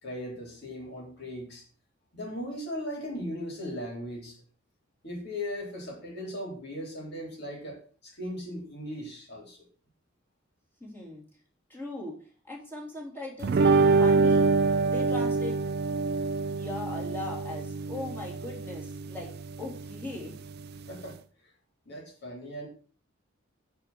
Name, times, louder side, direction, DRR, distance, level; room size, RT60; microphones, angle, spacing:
voice 1, 0.0-1.6 2.1-4.3 5.0-9.6 20.9-21.2 21.9-22.7, equal, 55° left, -1 dB, 3.8 m, -38 dB
voice 2, 10.8-11.2 11.7-12.2 12.4-14.5 14.9-15.6 16.5-19.3 19.6-20.4, left 2 dB, 10° left, -3 dB, 3.0 m, -39 dB
sound 1, 13.4-21.1, right 4 dB, 55° right, 0.5 m, -26 dB
9.7 x 4.6 x 6.3 m, 0.42 s
head